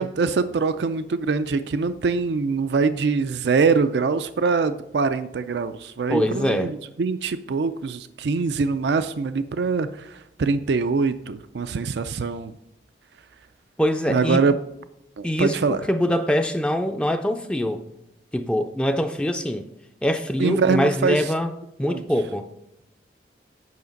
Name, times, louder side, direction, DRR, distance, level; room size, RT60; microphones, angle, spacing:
voice 1, 0.0-12.5 14.1-14.5 15.2-15.8 20.4-21.3 21.9-22.0, right 4 dB, 80° right, 0.4 m, -23 dB
voice 2, 6.1-6.7 13.8-14.4 15.2-15.6 15.9-17.8 18.3-19.7 20.0-21.5 21.8-22.5, equal, 5° left, 0.4 m, -23 dB
9.5 x 5.7 x 5.2 m
head